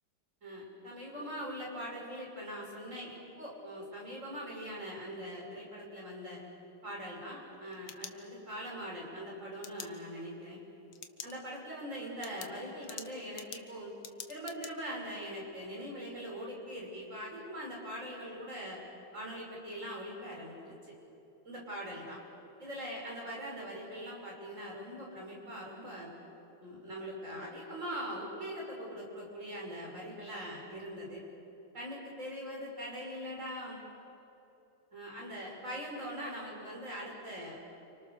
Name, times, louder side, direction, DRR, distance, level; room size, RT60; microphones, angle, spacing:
voice 1, 0.4-6.4 6.8-10.6 11.2-13.9 14.3-18.8 19.1-20.9 21.4-22.2 22.6-26.1 26.6-31.2 31.7-33.8 34.9-37.6, equal, 35° right, -2 dB, 6.6 m, -42 dB
sound 1, 7.5-8.7 9.6-9.9 10.9-11.3 11.7-11.8 12.2-14.7, left 8 dB, 65° left, 1.8 m, -46 dB
30.0 x 28.0 x 6.8 m, 3.0 s
omnidirectional pair, 2.3 m